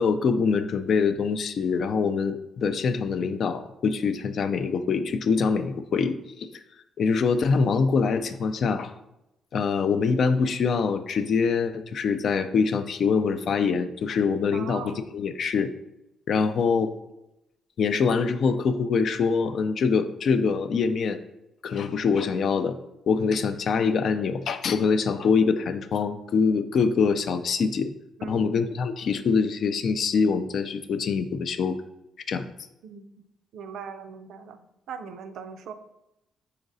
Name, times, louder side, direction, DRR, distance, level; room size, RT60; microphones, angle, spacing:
voice 1, 0.0-6.5 7.0-8.9 9.5-15.7 16.3-16.9 17.8-21.2 21.6-22.8 23.1-27.9 28.3-31.8 32.3-32.5, left 5 dB, 60° left, 10 dB, 0.3 m, -24 dB
voice 2, 14.5-15.1 28.2-28.6 32.8-33.1 33.5-34.6 34.9-35.7, right 6 dB, 75° right, 9 dB, 0.4 m, -39 dB
5.0 x 3.9 x 2.6 m, 0.89 s
cardioid pair, 90°, 0 cm